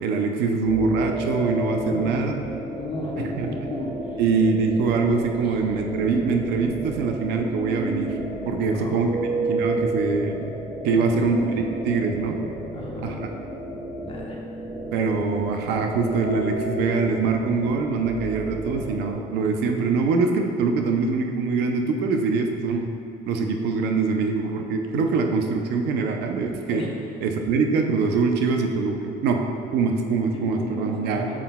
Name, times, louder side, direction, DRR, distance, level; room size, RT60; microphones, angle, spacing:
voice 1, 0.0-2.3 3.2-3.5 4.2-8.1 8.5-9.1 9.5-10.5 10.8-11.5 11.8-12.4 13.0-13.3 14.9-22.9 23.3-26.8 27.2-29.4 29.7-31.3, right 4 dB, 85° right, 3 dB, 0.6 m, -23 dB
sound 1, 0.7-19.1, right 1 dB, 30° right, 1.3 m, -32 dB
voice 2, 1.9-4.2 5.4-5.6 8.7-9.3 11.0-11.9 12.7-13.2 14.0-14.4 26.7-27.0 30.3-31.4, left 2 dB, 35° left, -2 dB, 1.1 m, -35 dB
8.3 x 6.1 x 2.3 m, 2.5 s
cardioid pair, 110°, 17 cm